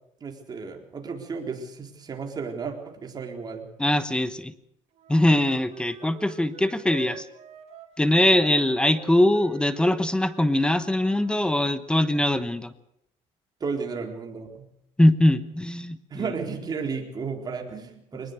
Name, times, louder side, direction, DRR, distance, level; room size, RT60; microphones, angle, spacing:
voice 1, 0.2-3.7 13.6-14.7 16.1-18.3, right 5 dB, 30° right, 3 dB, 4.0 m, -33 dB
voice 2, 3.8-4.5 5.1-7.3 8.0-12.7 15.0-16.0, left 1 dB, 5° left, 14 dB, 1.0 m, -22 dB
Wind instrument woodwind instrument, 4.9-11.5, right 8 dB, 55° right, 3.2 m, -47 dB
22.0 x 20.0 x 6.7 m, 0.72 s
cardioid pair, 120°, 13 cm